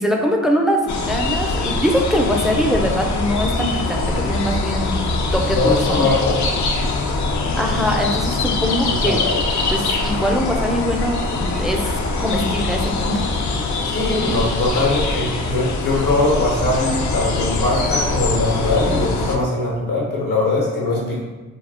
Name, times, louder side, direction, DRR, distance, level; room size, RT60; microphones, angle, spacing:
voice 1, 0.0-6.1 7.5-9.2 9.7-13.2, equal, ahead, 1 dB, 0.4 m, -22 dB
sound 1, 0.9-19.4, left 3 dB, 60° left, 0.5 m, -23 dB
voice 2, 5.5-6.4 8.8-9.5 13.8-21.2, left 2 dB, 80° left, -4 dB, 1.0 m, -21 dB
2.3 x 2.1 x 3.6 m, 1.2 s
cardioid pair, 60°, 33 cm